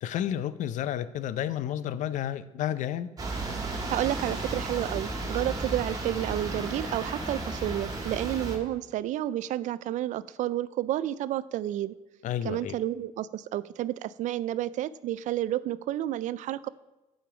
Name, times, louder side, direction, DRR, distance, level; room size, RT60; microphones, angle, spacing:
voice 1, 0.0-3.1 12.2-12.8, left 11 dB, 70° left, 15 dB, 0.5 m, -31 dB
sound 1, 3.2-8.6, right 2 dB, 30° right, 1.9 m, -34 dB
voice 2, 3.9-11.9 12.4-16.7, right 13 dB, 70° right, 17 dB, 0.4 m, -30 dB
8.8 x 5.2 x 5.9 m, 1.0 s
cardioid pair, 90°, 13 cm